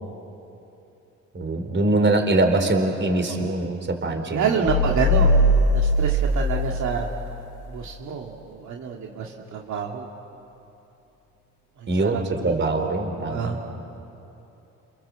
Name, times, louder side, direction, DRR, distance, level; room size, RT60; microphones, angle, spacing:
voice 1, 1.3-4.4 11.9-12.2 12.4-13.6, right 2 dB, 40° right, 5 dB, 4.5 m, -23 dB
voice 2, 4.3-5.4 5.7-7.1 7.7-10.1 11.8-12.6 13.1-13.6, right 6 dB, 70° right, -1 dB, 2.6 m, -28 dB
sound 1, 4.7-7.5, equal, 80° left, 1.4 m, -20 dB
28.0 x 27.0 x 7.9 m, 3.0 s
cardioid pair, 90°, 30 cm